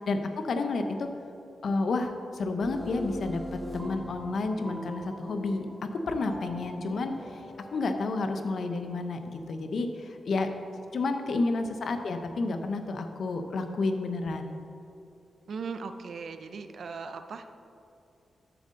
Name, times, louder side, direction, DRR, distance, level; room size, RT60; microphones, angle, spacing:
voice 1, 0.1-1.1 1.6-7.4 7.7-10.5 10.9-14.5, left 3 dB, 65° left, 6 dB, 0.8 m, -30 dB
sound 1, 2.6-8.0, equal, 5° right, 1.1 m, -41 dB
voice 2, 11.2-11.5 15.5-17.5, right 5 dB, 65° right, 8 dB, 0.6 m, -38 dB
13.0 x 7.8 x 3.8 m, 2.8 s
wide cardioid pair, 120°, 0 cm